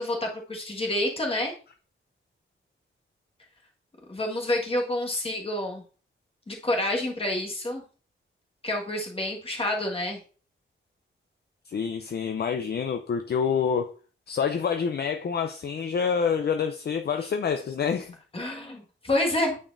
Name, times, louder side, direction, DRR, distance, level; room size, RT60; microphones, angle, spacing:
voice 1, 0.0-1.5 4.1-5.8 6.5-7.8 8.6-10.2 18.3-19.6, left 1 dB, 25° left, 1.5 m, -28 dB
voice 2, 11.7-13.9 14.3-18.2, left 6 dB, 50° left, 0.5 m, -27 dB
8.8 x 4.3 x 2.5 m
wide cardioid pair, 150°, 21 cm